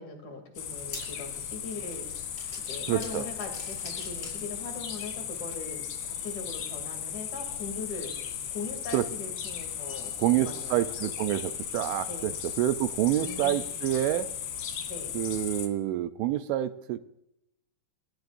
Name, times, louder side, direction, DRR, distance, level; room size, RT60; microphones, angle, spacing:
voice 1, 0.0-2.3 2.7-8.1 8.5-11.1 12.1-12.3 13.2-13.7 14.9-15.1, left 3 dB, 45° left, 4 dB, 3.8 m, -41 dB
sound 1, 0.5-4.9 5.4-5.5 6.5-6.6, left 2 dB, 15° left, 6.7 m, -46 dB
sound 2, 0.6-15.7, left 9 dB, 65° left, 4.2 m, -36 dB
voice 2, 2.9-3.3 8.9-9.1 10.2-12.3 12.6-14.3 15.1-17.0, right 13 dB, 80° right, 10 dB, 3.0 m, -27 dB
27.5 x 19.5 x 2.7 m, 0.84 s
omnidirectional pair, 5.6 m